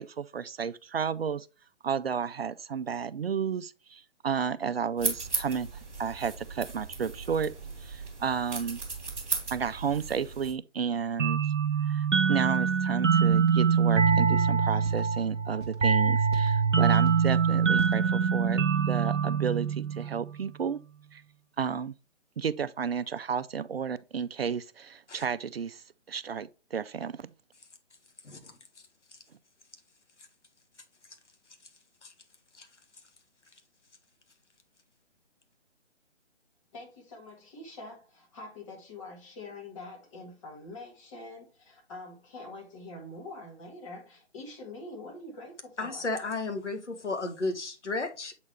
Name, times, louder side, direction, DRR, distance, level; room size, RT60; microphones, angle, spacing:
voice 1, 0.0-1.5 1.8-5.7 6.0-7.5 7.8-8.8 9.5-11.4 11.8-20.8 21.1-21.2 21.6-22.0 22.4-27.3, right 6 dB, 55° right, 0.5 m, -32 dB
sound 1, 5.0-10.5, right 3 dB, 5° right, 1.6 m, -36 dB
sound 2, 11.2-20.6, right 6 dB, 90° right, 0.8 m, -24 dB
sound 3, 12.5-12.8 13.3-13.5 14.1-14.3 14.8-15.1 15.5-15.8 16.3-16.6 17.0-17.3 17.8-18.0, right 3 dB, 25° right, 0.7 m, -42 dB
voice 2, 28.2-28.5 29.1-29.2 32.0-32.1 32.5-32.7 45.8-48.3, left 3 dB, 75° left, 1.5 m, -33 dB
voice 3, 36.7-46.1, left 2 dB, 25° left, 1.7 m, -45 dB
7.5 x 4.2 x 3.2 m
figure-of-eight pair, 150°, 36 cm